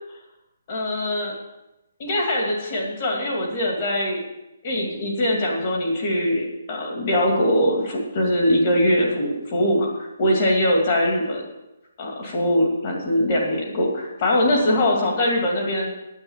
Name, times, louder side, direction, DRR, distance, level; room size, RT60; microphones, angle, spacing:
voice 1, 0.7-1.3 2.0-4.2 4.6-11.4 12.0-15.9, left 1 dB, 25° left, -1 dB, 2.4 m, -22 dB
9.9 x 8.3 x 7.2 m, 0.93 s
hypercardioid pair, 180°, 0 cm